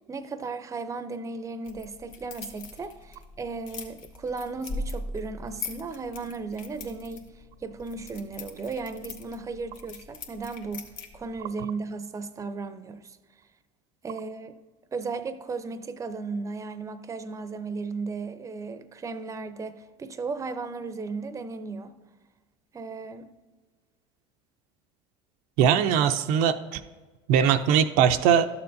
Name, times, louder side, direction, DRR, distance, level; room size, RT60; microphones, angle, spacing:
voice 1, 0.1-7.3 7.6-10.9 11.1-13.2 14.0-14.6 14.9-22.0 22.7-23.3, right 4 dB, 20° right, 0.6 m, -35 dB
sound 1, 1.7-11.4, left 2 dB, 65° left, 1.2 m, -41 dB
voice 2, 25.6-26.8 27.3-28.5, right 8 dB, 70° right, 0.5 m, -21 dB
12.5 x 7.0 x 2.6 m
supercardioid pair, 95°, 15 cm